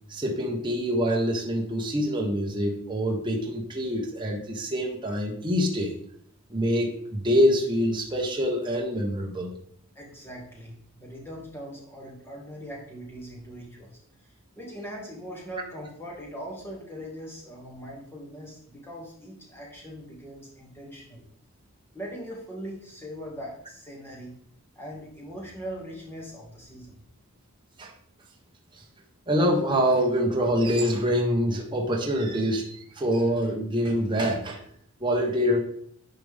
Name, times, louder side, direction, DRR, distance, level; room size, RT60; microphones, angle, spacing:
voice 1, 0.1-6.0 6.5-9.5 27.8-27.9 29.3-34.6 35.0-35.6, equal, 20° right, -1 dB, 1.2 m, -25 dB
voice 2, 10.0-14.0 14.6-21.2 21.9-24.3 24.8-27.0, equal, 10° left, -3 dB, 2.3 m, -40 dB
10.0 x 5.0 x 3.6 m, 0.65 s
head